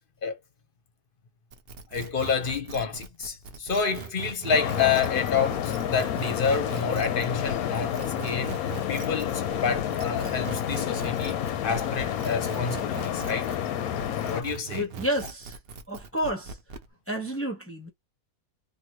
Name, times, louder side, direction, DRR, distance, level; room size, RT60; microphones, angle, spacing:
sound 1, 1.5-13.7 14.0-16.9, right 6 dB, 70° right, 0.5 m, -41 dB
voice 1, 1.9-8.0 8.2-8.6 8.9-13.5 14.3-14.9, left 6 dB, 45° left, 0.7 m, -28 dB
sound 2, 4.5-14.4, left 10 dB, 70° left, 1.0 m, -29 dB
voice 2, 14.7-15.6 15.9-16.6 17.1-17.9, equal, 15° left, 0.5 m, -30 dB
2.9 x 2.6 x 2.9 m
omnidirectional pair, 1.8 m